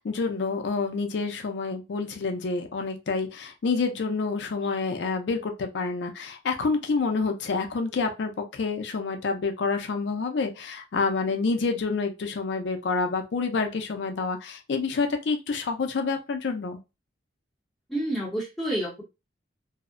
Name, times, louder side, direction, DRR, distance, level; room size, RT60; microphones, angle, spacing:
voice 1, 0.0-16.8, left 4 dB, 75° left, 5 dB, 0.4 m, -28 dB
voice 2, 17.9-19.0, right 1 dB, ahead, -5 dB, 0.8 m, -29 dB
2.6 x 2.0 x 2.4 m, 0.26 s
head